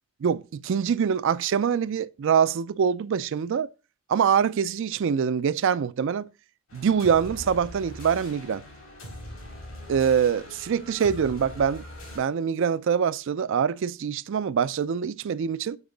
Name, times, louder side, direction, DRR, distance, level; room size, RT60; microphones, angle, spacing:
voice 1, 0.2-3.7 4.1-6.2 6.7-8.6 9.9-11.8 12.2-15.8, right 7 dB, 60° right, 0.3 m, -24 dB
sound 1, 6.7-12.2, left 1 dB, 65° left, 3.9 m, -42 dB
7.1 x 4.7 x 3.9 m
head